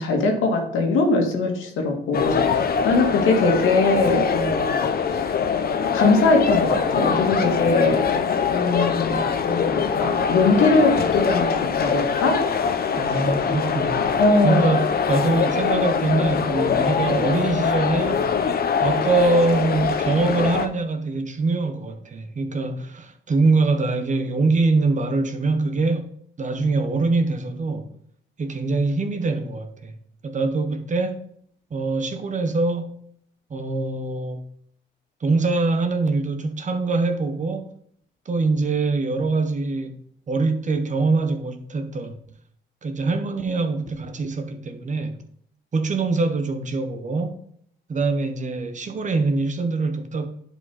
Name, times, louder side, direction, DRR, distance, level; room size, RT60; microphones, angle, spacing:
voice 1, 0.0-5.3 5.9-8.1 8.5-12.4 12.9-13.2 14.2-14.6, left 3 dB, 85° left, 2.1 m, -21 dB
sound 1, 2.1-20.7, left 6 dB, 50° left, 0.9 m, -23 dB
voice 2, 2.1-2.7 13.0-18.3 18.8-27.9 28.4-30.0 30.2-31.3 31.7-33.0 33.5-34.5 35.2-37.7 38.2-40.0 40.3-42.2 42.8-45.2 45.7-47.3 47.9-50.3, right 3 dB, 40° right, 1.2 m, -24 dB
10.5 x 5.0 x 4.3 m
cardioid pair, 90°, 20 cm